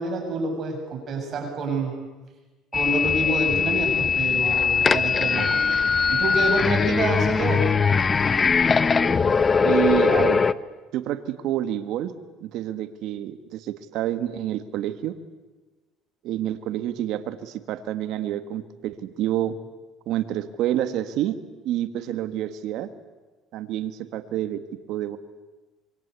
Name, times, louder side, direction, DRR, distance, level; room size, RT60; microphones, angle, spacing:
voice 1, 0.0-1.9 2.7-5.8 6.1-7.7, right 2 dB, 45° right, 2 dB, 7.5 m, -27 dB
sound 1, 2.7-10.5, left 5 dB, 25° left, 0.8 m, -21 dB
voice 2, 9.6-10.4 10.9-12.1 12.4-15.2 16.2-19.5 20.0-21.4 21.6-22.9 23.5-24.6 24.9-25.2, right 12 dB, 70° right, 10 dB, 1.7 m, -28 dB
26.0 x 24.0 x 8.3 m, 1.2 s
cardioid pair, 110°, 0 cm